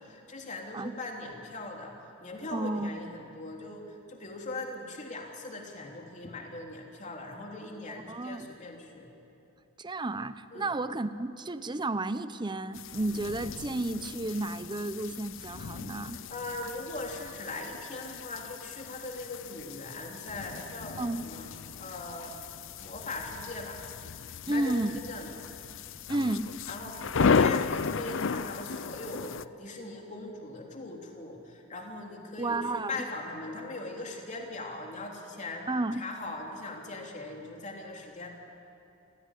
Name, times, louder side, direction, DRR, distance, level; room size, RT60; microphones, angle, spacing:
voice 1, 0.0-1.9 2.2-3.8 4.1-9.1 10.5-10.7 16.3-21.5 21.8-22.5 22.8-23.8 24.5-25.3 26.7-35.7 36.0-38.3, left 2 dB, 35° left, 1 dB, 3.3 m, -40 dB
voice 2, 2.5-2.9 8.1-8.5 9.8-16.2 21.0-21.3 24.5-25.0 26.1-26.5 32.4-33.0 35.7-36.0, right 2 dB, 20° right, 13 dB, 0.8 m, -32 dB
sound 1, 12.7-29.4, left 5 dB, 65° left, 0.6 m, -34 dB
28.5 x 16.5 x 10.0 m, 2.9 s
head